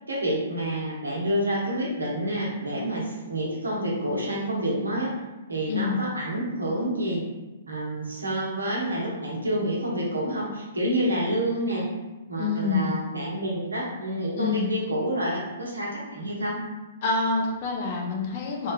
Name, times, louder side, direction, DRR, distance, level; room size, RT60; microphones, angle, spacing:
voice 1, 0.1-5.1 5.5-7.2 7.7-11.9 12.3-16.6, right 1 dB, 80° right, -4 dB, 1.1 m, -28 dB
voice 2, 5.7-6.0 12.4-12.9 14.4-14.7 17.0-18.7, left 4 dB, 45° left, -1 dB, 0.7 m, -26 dB
3.3 x 3.3 x 2.2 m, 1.1 s
figure-of-eight pair, 120°, 0 cm